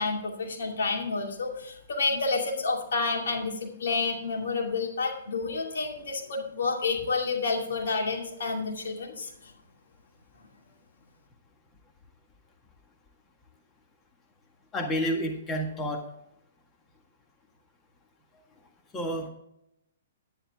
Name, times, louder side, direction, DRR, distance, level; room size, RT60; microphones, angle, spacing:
voice 1, 0.0-9.3, left 4 dB, 75° left, 1 dB, 2.4 m, -29 dB
voice 2, 14.7-16.0 18.9-19.3, equal, 20° left, 3 dB, 1.6 m, -29 dB
10.0 x 9.9 x 3.5 m, 0.78 s
hypercardioid pair, 130°, 0 cm